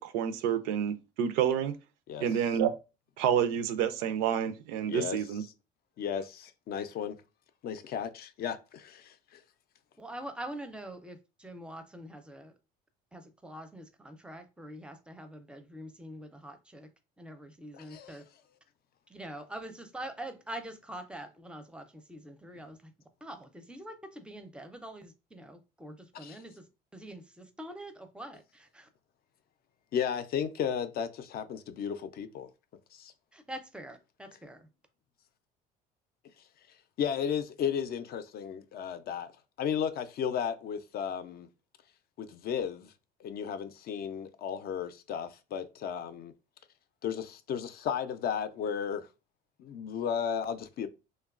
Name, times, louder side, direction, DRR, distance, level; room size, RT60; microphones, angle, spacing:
voice 1, 0.0-1.8 2.2-2.7 3.2-5.4, right 9 dB, 80° right, 0.4 m, -29 dB
voice 2, 4.8-5.2 6.0-7.2 7.6-9.4 17.7-18.2 26.1-26.4 29.9-32.5 32.9-33.1 37.0-39.3 39.6-41.5 42.2-42.9 43.2-46.3 47.0-49.1 49.6-50.9, left 8 dB, 50° left, 0.4 m, -34 dB
voice 3, 10.0-12.5 13.1-16.9 17.2-18.2 19.1-22.9 23.2-26.6 26.9-28.9 33.3-34.7, right 1 dB, 5° right, 0.5 m, -44 dB
2.9 x 2.2 x 2.4 m
supercardioid pair, 80°, 20 cm